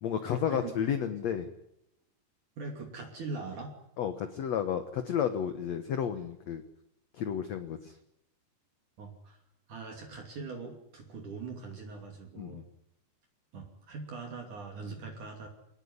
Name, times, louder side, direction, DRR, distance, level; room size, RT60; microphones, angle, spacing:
voice 1, 0.0-1.5 4.0-6.6 7.1-7.9 12.4-12.6, left 8 dB, 70° left, 9 dB, 1.6 m, -32 dB
voice 2, 2.6-3.7 9.0-9.4 9.7-12.6 13.5-15.5, right 4 dB, 50° right, 3 dB, 4.0 m, -41 dB
24.0 x 19.0 x 9.8 m, 0.79 s
omnidirectional pair, 4.9 m